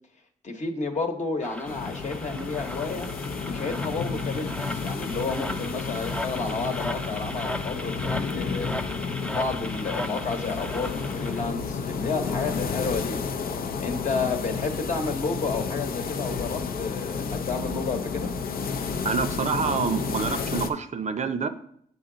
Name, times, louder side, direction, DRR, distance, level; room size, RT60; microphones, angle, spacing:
voice 1, 0.4-3.1 3.4-13.3 13.8-18.3, left 4 dB, 45° left, 4 dB, 1.1 m, -31 dB
sound 1, 1.4-11.4, left 1 dB, 5° left, 0.5 m, -36 dB
sound 2, 1.6-20.7, left 5 dB, 65° left, 0.5 m, -31 dB
voice 2, 19.0-21.5, right 5 dB, 45° right, 9 dB, 0.6 m, -27 dB
8.0 x 3.9 x 3.8 m, 0.68 s
supercardioid pair, 55°, 16 cm